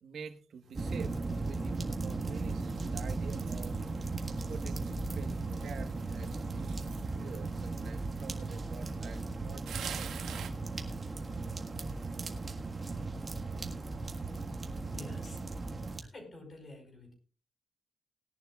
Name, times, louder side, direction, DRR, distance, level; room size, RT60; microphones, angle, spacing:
voice 1, 0.0-3.8 4.5-6.7 7.0-10.1 11.7-12.2, right 6 dB, 60° right, 8 dB, 1.4 m, -48 dB
sound 1, 0.7-16.0, right 3 dB, 25° right, 1.6 m, -37 dB
sound 2, 2.3-9.2 9.7-10.5, right 6 dB, 80° right, 1.7 m, -46 dB
voice 2, 14.9-15.4 16.1-17.1, left 1 dB, 30° left, 3 dB, 5.2 m, -48 dB
20.0 x 11.0 x 2.4 m, 0.36 s
wide cardioid pair, 150°, 0 cm